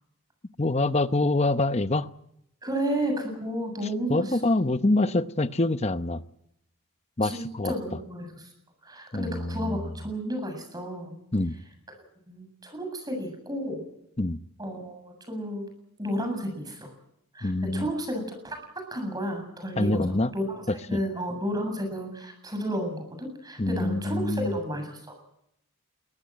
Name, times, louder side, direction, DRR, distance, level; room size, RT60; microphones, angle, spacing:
voice 1, 0.6-2.1 4.1-6.2 7.2-7.7 9.1-9.9 11.3-11.5 14.2-14.4 17.4-17.9 19.8-20.3 20.7-21.0 23.6-24.6, left 2 dB, 30° left, 12 dB, 0.9 m, -25 dB
voice 2, 2.6-4.4 7.2-8.4 8.8-11.2 12.3-13.8 14.6-15.7 16.0-16.9 17.3-25.1, equal, 15° right, 5 dB, 7.5 m, -32 dB
22.5 x 19.0 x 9.0 m, 0.78 s
head